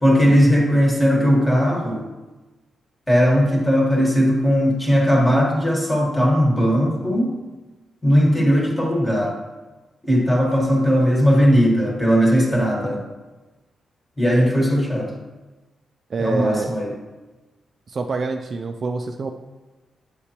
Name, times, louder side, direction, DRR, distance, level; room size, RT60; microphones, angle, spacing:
voice 1, 0.0-2.0 3.1-7.3 8.0-9.3 10.0-13.0 14.2-15.1 16.2-16.9, equal, 10° left, -1 dB, 1.4 m, -18 dB
voice 2, 16.1-16.7 17.9-19.3, right 4 dB, 40° right, 4 dB, 0.4 m, -26 dB
8.7 x 6.7 x 2.9 m, 1.2 s
wide cardioid pair, 150°, 0 cm